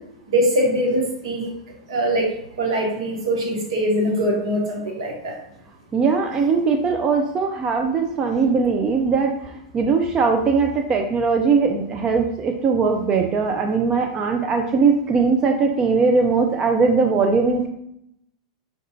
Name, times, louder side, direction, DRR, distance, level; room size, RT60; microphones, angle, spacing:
voice 1, 0.3-1.5 1.9-2.3 2.6-5.3, equal, 70° right, 0 dB, 1.0 m, -22 dB
voice 2, 5.9-17.7, right 4 dB, 30° right, 4 dB, 0.4 m, -20 dB
4.7 x 2.3 x 2.7 m, 0.79 s
hypercardioid pair, 95°, 3 cm